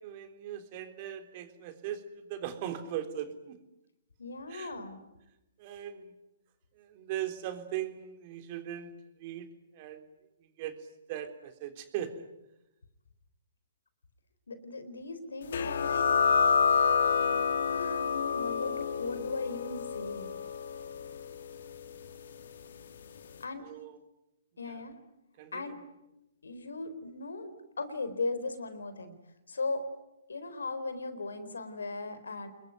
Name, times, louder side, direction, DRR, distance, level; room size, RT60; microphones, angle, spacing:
voice 1, 0.0-3.6 4.5-4.7 5.6-6.1 6.8-8.9 9.2-10.1 10.6-10.7 11.1-12.3 23.6-24.0 24.6-24.8 25.4-25.8, right 10 dB, 40° right, 7 dB, 3.6 m, -39 dB
voice 2, 4.2-5.0 14.5-16.1 17.6-20.3 23.4-23.7 24.6-25.0 25.5-25.8 26.4-29.1 29.5-29.9 30.3-32.5, left 3 dB, 80° left, 12 dB, 4.2 m, -37 dB
sound 1, 15.5-22.8, left 6 dB, 65° left, 2.6 m, -29 dB
28.0 x 21.5 x 9.5 m, 0.92 s
hypercardioid pair, 130°, 0 cm